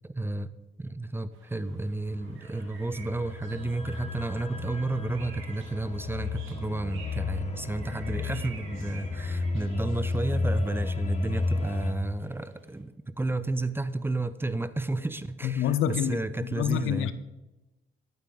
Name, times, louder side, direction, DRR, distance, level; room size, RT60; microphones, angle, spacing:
voice 1, 0.0-0.5 0.8-17.1, right 2 dB, 10° right, 14 dB, 0.5 m, -32 dB
sound 1, 1.3-12.8, right 5 dB, 85° right, 2.1 m, -53 dB
sound 2, 2.1-11.9, left 3 dB, 30° left, 1.3 m, -33 dB
voice 2, 15.4-16.2 16.5-17.1, left 10 dB, 85° left, 13 dB, 0.6 m, -27 dB
11.5 x 8.7 x 3.9 m, 1.0 s
cardioid pair, 90°, 20 cm